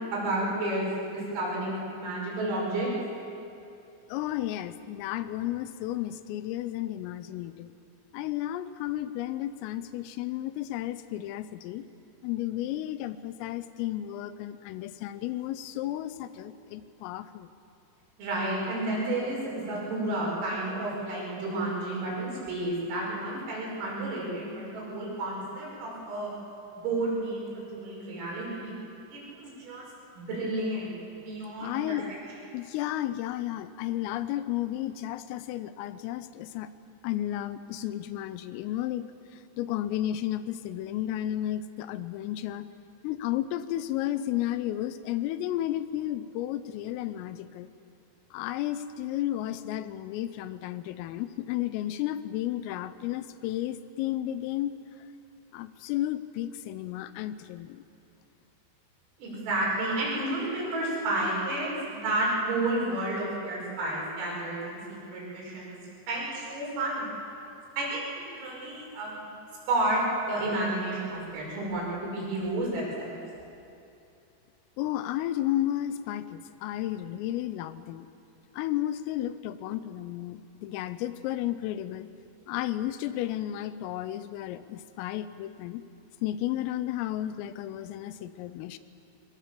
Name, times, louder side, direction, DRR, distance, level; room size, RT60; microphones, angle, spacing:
voice 1, 0.1-2.9 18.2-26.3 26.8-28.7 29.1-29.9 30.2-30.9 31.2-32.0 59.2-65.8 66.1-67.1 67.8-68.0 68.3-69.3 69.7-73.2, right 2 dB, 80° right, -4 dB, 8.4 m, -31 dB
voice 2, 4.1-7.7 8.1-11.8 12.2-17.5 31.6-32.1 32.5-36.7 37.0-39.1 39.3-42.7 43.0-47.7 48.3-54.7 55.5-57.8 74.8-78.1 78.5-82.1 82.5-85.8 86.2-88.8, left 13 dB, 85° left, 13 dB, 3.4 m, -33 dB
22.5 x 22.0 x 7.5 m, 2.7 s
omnidirectional pair, 5.8 m